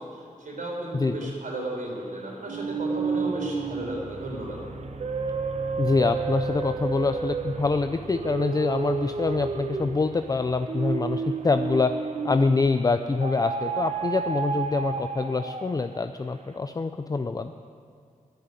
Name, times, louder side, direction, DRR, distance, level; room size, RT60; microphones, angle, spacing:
voice 1, 0.4-4.6, right 1 dB, 75° right, -2 dB, 3.8 m, -34 dB
voice 2, 0.9-1.3 5.8-12.0 12.2-17.5, left 3 dB, 25° left, 9 dB, 0.4 m, -25 dB
sound 1, 2.5-12.7 13.2-16.0, right 5 dB, 55° right, 0.8 m, -31 dB
10.5 x 9.0 x 9.5 m, 2.2 s
wide cardioid pair, 110°, 14 cm